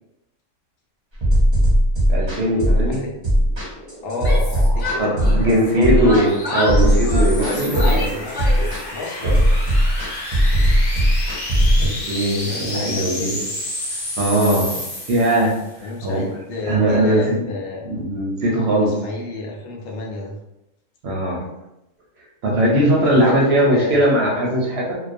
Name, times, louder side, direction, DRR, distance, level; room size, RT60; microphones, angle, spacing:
sound 1, 1.2-11.9, equal, 35° right, 0.5 m, -18 dB
voice 1, 2.1-3.0 5.0-8.1 9.2-9.4 11.8-13.5 14.2-14.8 15.1-15.6 16.0-16.2 16.7-17.4 17.8-19.0 21.0-21.4 22.4-24.9, right 1 dB, 65° right, -3 dB, 0.7 m, -19 dB
sound 2, 3.2-15.7, left 1 dB, 50° left, 0.8 m, -32 dB
voice 2, 4.0-6.1 7.4-9.4 12.4-13.1 15.8-17.8 18.7-20.4 23.0-24.0, left 3 dB, 75° left, -1 dB, 0.9 m, -31 dB
Yell, 4.1-5.7 6.0-8.9, left 1 dB, 30° left, 0.4 m, -28 dB
2.3 x 2.3 x 2.5 m, 0.90 s
omnidirectional pair, 1.4 m